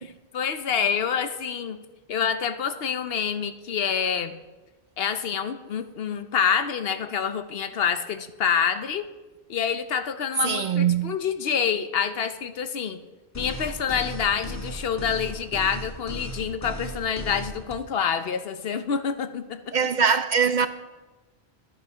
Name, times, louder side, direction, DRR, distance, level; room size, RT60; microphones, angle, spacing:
voice 1, 0.0-1.8 2.1-4.3 5.0-9.1 9.5-13.0 13.3-19.7, left 7 dB, 70° left, 1.0 m, -27 dB
voice 2, 10.4-11.2 19.7-20.7, right 6 dB, 55° right, 0.6 m, -22 dB
sound 1, 13.3-17.7, equal, 15° left, 1.4 m, -36 dB
11.5 x 9.8 x 5.6 m
omnidirectional pair, 1.1 m